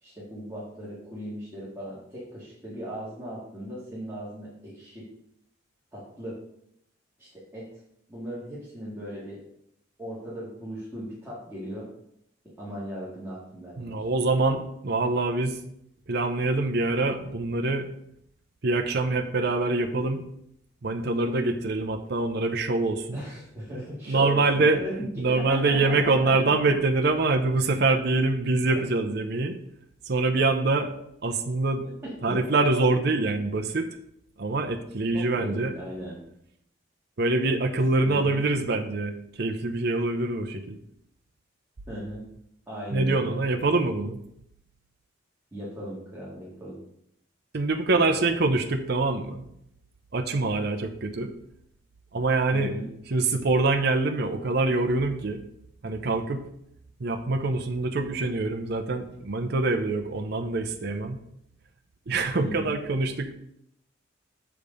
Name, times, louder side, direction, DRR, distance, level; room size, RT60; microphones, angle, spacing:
voice 1, 0.0-5.1 5.9-6.4 7.2-7.7 8.1-9.4 10.0-11.9 12.6-14.0 23.1-26.3 32.3-32.4 35.1-36.2 38.0-38.4 41.9-42.3 42.7-43.4 45.5-46.8 47.9-48.3 52.5-52.9 62.4-62.8, equal, 10° right, -9 dB, 2.1 m, -37 dB
voice 2, 13.8-15.6 16.1-17.9 18.6-20.2 20.8-23.2 24.1-24.8 25.2-29.5 30.1-30.9 31.2-31.9 32.2-33.9 34.4-35.7 37.2-40.8 42.9-44.2 47.5-49.5 50.1-51.3 52.1-52.7 53.1-55.4 55.8-56.5 57.0-61.2 62.1-63.3, right 3 dB, 55° right, 6 dB, 0.6 m, -25 dB
6.9 x 5.2 x 5.3 m, 0.75 s
head